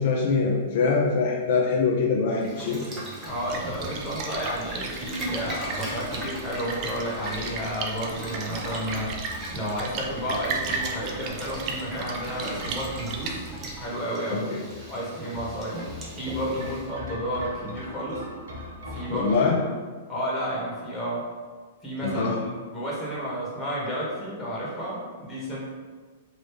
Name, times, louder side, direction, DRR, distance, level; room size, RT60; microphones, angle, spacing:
voice 1, 0.0-2.8 14.3-14.6 19.1-19.6 22.0-22.4, left 4 dB, 55° left, -2 dB, 0.4 m, -23 dB
Boiling, 2.4-16.9, right 1 dB, 25° right, 0.9 m, -39 dB
voice 2, 3.2-13.4 13.8-14.5 14.9-15.8 16.1-18.2 18.9-19.7 20.1-21.3 21.8-22.3 22.7-25.6, equal, 15° left, -6 dB, 1.3 m, -31 dB
Splash splatter, 3.3-13.9, right 4 dB, 40° right, 0.5 m, -35 dB
sound 1, 14.7-19.3, left 2 dB, 80° right, 0.8 m, -41 dB
3.1 x 2.7 x 3.2 m, 1.5 s
hypercardioid pair, 115°, 0 cm